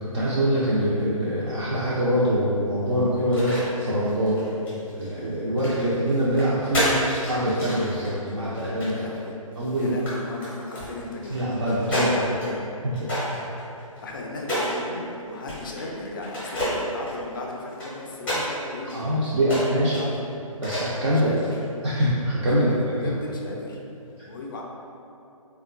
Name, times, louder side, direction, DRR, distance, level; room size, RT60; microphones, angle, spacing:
voice 1, 0.0-4.5 4.9-6.9 7.3-9.0 9.6-9.9 11.3-12.3 12.8-13.1 18.9-20.0 20.6-21.3 21.8-22.7, equal, 55° right, -9 dB, 0.5 m, -24 dB
sound 1, 3.2-3.6 4.1-5.1 5.6-9.2 9.6-10.1 10.4-12.5 12.9-14.8 15.5-15.9 16.2-18.5 18.9-19.0 19.4-20.0 20.6-21.0 21.4-21.7, equal, 5° left, 0.7 m, -30 dB
voice 2, 8.9-11.6 11.9-12.7 13.8-20.3 21.1-21.6 22.4-23.8 24.3-24.6, left 2 dB, 35° left, 0 dB, 0.4 m, -36 dB
3.5 x 2.3 x 2.4 m, 2.6 s
figure-of-eight pair, 135°, 18 cm